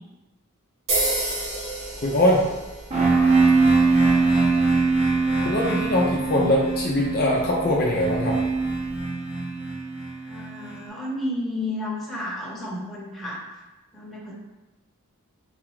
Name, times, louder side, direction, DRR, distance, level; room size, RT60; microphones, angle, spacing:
sound 1, 0.9-9.0, right 1 dB, 70° right, 1.5 m, -33 dB
voice 1, 2.0-2.4 5.4-8.4, left 1 dB, 45° left, -3 dB, 0.5 m, -22 dB
sound 2, 2.9-10.7, right 3 dB, 30° right, 0.8 m, -22 dB
voice 2, 3.9-4.3 10.3-13.4 13.9-14.3, left 1 dB, ahead, -7 dB, 1.0 m, -32 dB
4.0 x 2.4 x 4.7 m, 1.1 s
head